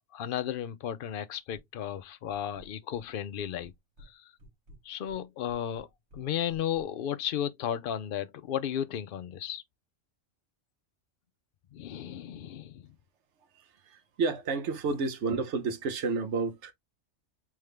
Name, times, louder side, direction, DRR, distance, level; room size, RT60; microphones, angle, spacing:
voice 1, 0.1-3.7 4.0-4.3 4.8-5.9 6.1-9.6 11.7-12.9, left 10 dB, 60° left, 0.5 m, -34 dB
sound 1, 1.5-2.0 2.3-3.1 3.3-4.1 4.4-6.9, equal, 80° right, 1.6 m, -54 dB
voice 2, 13.6-16.7, right 4 dB, 60° right, 1.1 m, -31 dB
3.6 x 3.5 x 3.2 m
omnidirectional pair, 1.4 m